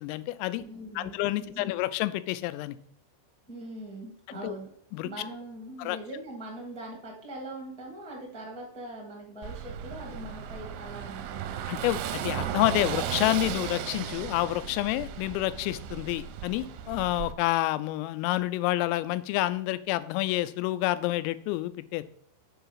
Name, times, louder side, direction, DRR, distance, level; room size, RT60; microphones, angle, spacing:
voice 1, 0.0-0.6 1.0-2.8 4.3-4.5 4.9-5.1 5.8-6.0 11.7-22.0, left 16 dB, 85° left, 14 dB, 3.2 m, -29 dB
voice 2, 0.5-1.7 3.5-4.7 5.0-11.5, right 1 dB, 5° left, -2 dB, 0.5 m, -42 dB
Car passing by / Engine, 9.4-17.3, right 9 dB, 80° right, 2.6 m, -35 dB
7.1 x 5.7 x 5.6 m, 0.65 s
omnidirectional pair, 5.9 m